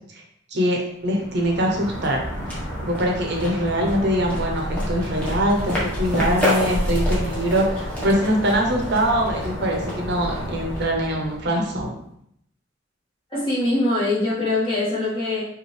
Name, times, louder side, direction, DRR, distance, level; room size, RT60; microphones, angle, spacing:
voice 1, 0.5-2.2 2.8-11.9, equal, 60° right, 1 dB, 0.8 m, -23 dB
sound 1, 1.0-11.8, equal, 10° left, 1.2 m, -28 dB
voice 2, 13.3-15.5, left 2 dB, 25° left, -8 dB, 1.8 m, -23 dB
5.2 x 2.6 x 3.3 m, 0.71 s
head